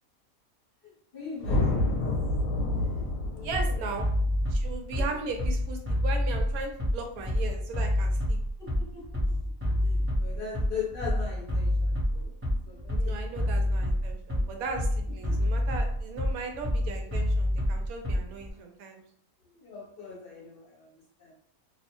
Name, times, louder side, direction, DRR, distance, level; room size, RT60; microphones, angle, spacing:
voice 1, 0.8-1.8 2.8-3.8 8.6-12.4 12.6-13.9 15.3-15.5 19.4-21.3, left 5 dB, 45° left, -5 dB, 0.9 m, -41 dB
sound 1, 1.4-5.8, left 2 dB, 75° left, 1.0 m, -29 dB
voice 2, 3.4-4.1 4.5-8.4 12.9-19.0, right 3 dB, 85° right, 3 dB, 1.0 m, -37 dB
Bass drum, 3.5-18.5, left 1 dB, 15° right, 0.5 m, -28 dB
2.6 x 2.1 x 2.9 m, 0.63 s
omnidirectional pair, 1.5 m